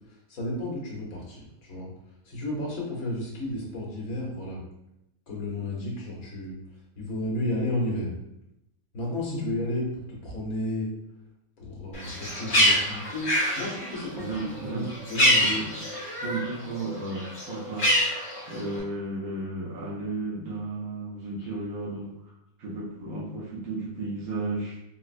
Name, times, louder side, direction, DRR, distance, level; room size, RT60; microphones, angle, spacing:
voice 1, 0.3-1.9 2.2-4.6 5.3-6.6 7.0-8.1 8.9-10.9 11.6-15.6 21.4-21.5, left 1 dB, 80° left, -3 dB, 1.4 m, -32 dB
Bird, 11.9-16.5 16.9-18.8, equal, 60° left, 1.5 m, -25 dB
voice 2, 14.1-14.9 15.4-18.0 18.5-24.8, right 2 dB, 80° right, -5 dB, 1.2 m, -34 dB
4.0 x 2.0 x 2.4 m, 0.85 s
omnidirectional pair, 1.5 m